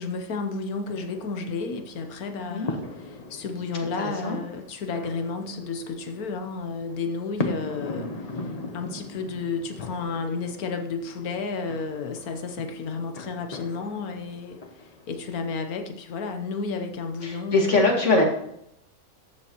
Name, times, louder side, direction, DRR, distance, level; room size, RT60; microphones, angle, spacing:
voice 1, 0.0-8.4 8.7-14.6 15.1-17.8, left 4 dB, 85° left, 6 dB, 1.5 m, -32 dB
sound 1, 0.8-15.7, left 3 dB, 30° left, 0.8 m, -39 dB
voice 2, 3.8-4.4 17.2-18.2, left 2 dB, 55° left, 0 dB, 2.3 m, -22 dB
13.5 x 7.6 x 3.0 m, 0.75 s
omnidirectional pair, 1.5 m